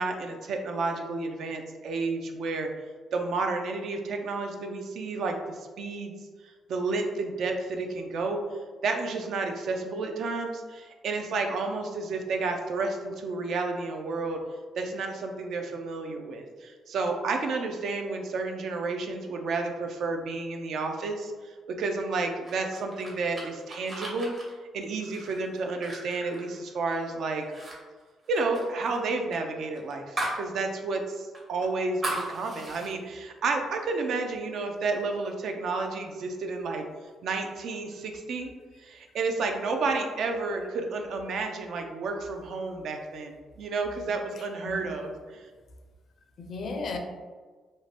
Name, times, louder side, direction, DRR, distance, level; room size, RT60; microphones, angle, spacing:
voice 1, 0.0-2.7 3.1-6.1 6.4-8.4 8.8-14.4 14.8-24.3 24.7-27.4 28.3-36.8 37.2-38.5 38.8-45.5, right 3 dB, 70° right, 4 dB, 0.3 m, -31 dB
sound 1, 22.4-27.1 27.4-27.8 28.0-30.5 30.8-30.9 31.3-32.9, right 1 dB, 40° right, 0.8 m, -37 dB
voice 2, 44.3-45.0 46.4-47.0, left 3 dB, 55° left, 4 dB, 0.4 m, -36 dB
2.6 x 2.1 x 3.2 m, 1.4 s
cardioid pair, 90°, 0 cm